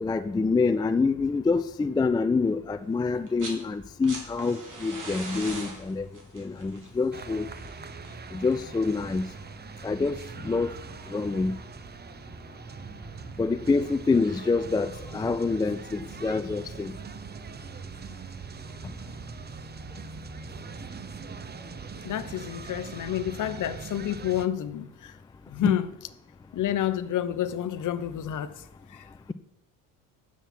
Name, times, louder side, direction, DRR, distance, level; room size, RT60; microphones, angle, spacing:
voice 1, 0.0-6.1 6.3-7.5 8.3-9.3 9.8-10.2 10.4-10.7 11.1-11.5 13.4-16.9 25.6-25.7, left 4 dB, 10° left, 0.4 m, -26 dB
sound 1, 3.1-3.6 3.9-8.8 10.0-10.1, right 2 dB, 45° right, 3.6 m, -41 dB
sound 2, 7.1-24.5, right 5 dB, 25° right, 0.7 m, -42 dB
voice 2, 22.0-25.1 25.5-25.9 26.5-28.5 28.9-29.0, left 11 dB, 45° left, 0.9 m, -29 dB
9.0 x 7.4 x 6.0 m
supercardioid pair, 80°, 42 cm